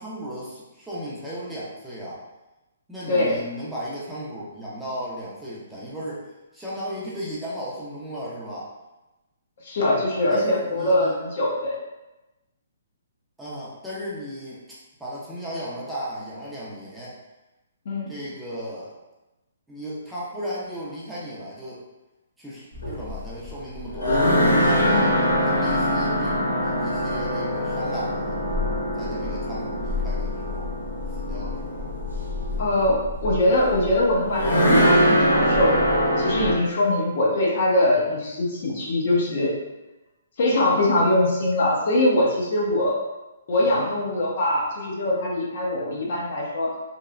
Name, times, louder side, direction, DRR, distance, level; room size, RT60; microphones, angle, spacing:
voice 1, 0.0-2.2 2.9-8.7 10.3-11.3 13.4-14.6 15.0-17.1 18.1-18.9 19.7-21.8 22.4-24.2 24.6-25.1 25.4-28.4 28.9-30.7 31.1-31.9 43.6-43.8, equal, 5° right, -9 dB, 0.5 m, -35 dB
voice 2, 9.6-11.8 17.9-18.1 24.8-25.1 32.6-35.8 36.2-39.5 40.4-43.0 43.5-46.7, left 1 dB, 55° left, -3 dB, 0.7 m, -22 dB
sound 1, 22.7-36.6, equal, 80° left, 0.9 m, -23 dB
3.0 x 2.0 x 2.4 m, 1.0 s
hypercardioid pair, 150°, 0 cm